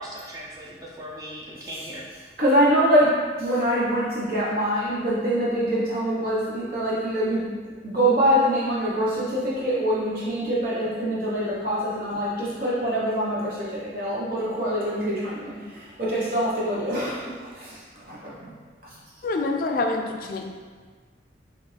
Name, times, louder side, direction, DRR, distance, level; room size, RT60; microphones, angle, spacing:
voice 1, 0.0-2.0, equal, 20° right, -4 dB, 0.5 m, -38 dB
voice 2, 2.4-3.1 3.4-7.4 7.8-17.7 18.1-18.5, equal, 50° right, -7 dB, 0.9 m, -24 dB
voice 3, 19.2-20.4, left 3 dB, 50° left, 3 dB, 0.3 m, -26 dB
4.3 x 2.5 x 3.3 m, 1.5 s
head